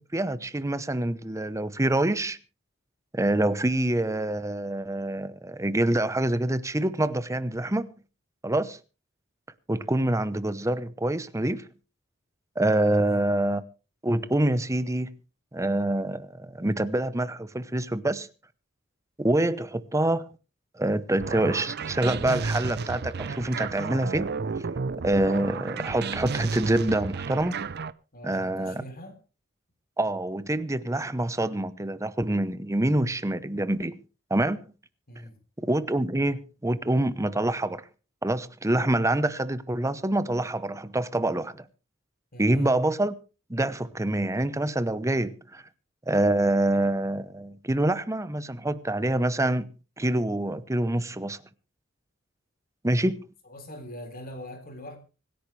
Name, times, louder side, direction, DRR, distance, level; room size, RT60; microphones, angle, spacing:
voice 1, 0.0-2.4 3.1-7.9 8.4-8.8 9.7-11.7 12.6-13.6 14.0-15.1 15.5-18.3 19.2-20.3 20.7-24.3 24.6-24.7 25.0-27.6 28.2-28.8 30.0-34.0 34.3-34.7 35.6-37.9 38.2-41.6 42.4-43.2 43.5-45.6 46.1-49.7 50.0-51.4 52.8-53.3, right 1 dB, 15° right, 0.8 m, -26 dB
voice 2, 12.9-13.2 28.1-29.2 35.1-35.4 42.3-42.7 53.5-55.0, left 1 dB, 50° left, 3.6 m, -42 dB
sound 1, 21.2-27.9, right 4 dB, 55° right, 0.6 m, -32 dB
25.0 x 10.5 x 3.3 m
head